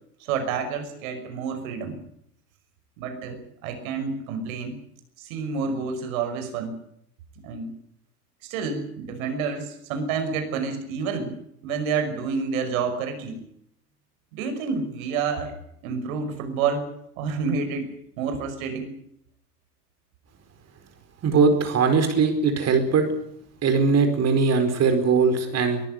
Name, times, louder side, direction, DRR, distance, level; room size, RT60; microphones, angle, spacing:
voice 1, 0.2-2.0 3.0-4.8 5.2-6.7 7.4-7.7 8.4-11.4 11.6-13.4 14.3-15.5 15.8-16.9 17.2-17.9 18.2-18.9, right 5 dB, 60° right, 8 dB, 5.8 m, -29 dB
voice 2, 21.2-23.1 23.6-25.8, right 5 dB, 30° right, 7 dB, 4.6 m, -20 dB
23.0 x 14.5 x 9.8 m, 0.72 s
figure-of-eight pair, 85°, 47 cm